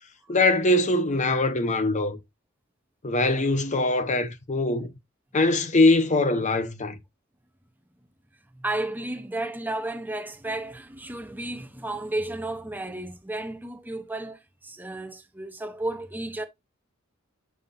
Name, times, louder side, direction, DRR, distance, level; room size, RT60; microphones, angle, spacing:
voice 1, 0.3-2.2 3.0-4.9 5.3-7.0, left 2 dB, 35° left, 0.8 m, -22 dB
voice 2, 8.5-16.4, right 2 dB, 10° right, 0.7 m, -33 dB
7.1 x 5.5 x 2.6 m
head